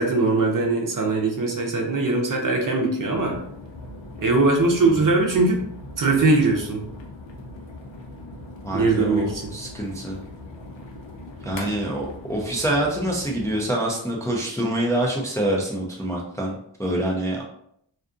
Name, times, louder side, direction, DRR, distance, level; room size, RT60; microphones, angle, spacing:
voice 1, 0.0-3.4 4.2-5.6 6.0-6.8 8.7-9.4, right 3 dB, 45° right, 1 dB, 0.7 m, -21 dB
sound 1, 3.1-13.6, left 2 dB, 70° left, 0.7 m, -40 dB
voice 2, 8.6-10.2 11.4-17.5, right 1 dB, 5° left, -2 dB, 0.4 m, -26 dB
2.5 x 2.4 x 2.5 m, 0.69 s
cardioid pair, 55°, 46 cm